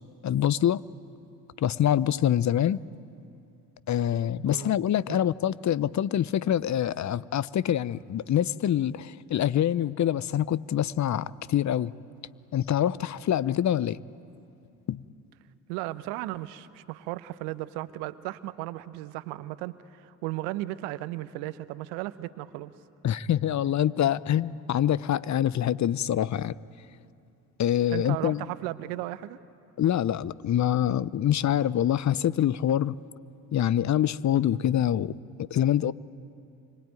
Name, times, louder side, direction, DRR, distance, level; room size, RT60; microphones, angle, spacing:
voice 1, 0.2-0.8 1.6-2.8 3.9-11.9 12.5-14.0 14.9-15.0 23.0-26.5 27.6-28.4 29.8-33.0 33.5-35.1 35.4-35.9, left 11 dB, 40° left, 19 dB, 0.9 m, -25 dB
voice 2, 15.7-22.7 27.9-29.4, right 17 dB, 75° right, 14 dB, 1.1 m, -35 dB
26.5 x 24.5 x 9.3 m, 2.6 s
hypercardioid pair, 50°, 41 cm